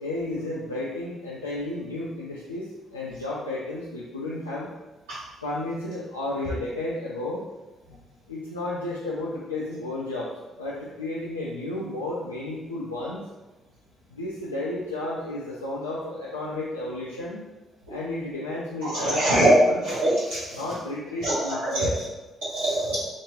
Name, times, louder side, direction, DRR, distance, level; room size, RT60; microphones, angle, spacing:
voice 1, 0.0-4.7 5.4-7.4 8.3-10.3 10.6-13.2 14.1-17.4 17.9-19.8 20.5-21.9, left 2 dB, 85° left, -7 dB, 0.3 m, -32 dB
voice 2, 18.9-19.5 19.8-20.6 21.2-21.9 22.4-23.1, right 1 dB, 70° right, -11 dB, 0.8 m, -23 dB
2.8 x 2.5 x 3.0 m, 1.1 s
figure-of-eight pair, 40°, 0 cm